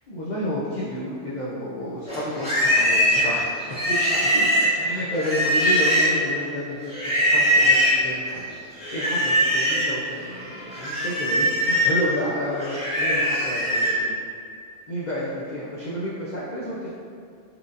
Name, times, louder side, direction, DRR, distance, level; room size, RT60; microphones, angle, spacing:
voice 1, 0.1-6.9 7.3-8.6 8.9-14.2 14.9-16.9, equal, 70° left, -7 dB, 0.4 m, -30 dB
Livestock farm animals working animals, 2.1-6.3 6.9-8.0 8.8-9.9 10.3-14.0, equal, 5° right, 0.9 m, -22 dB
4.2 x 2.6 x 2.5 m, 2.2 s
omnidirectional pair, 1.3 m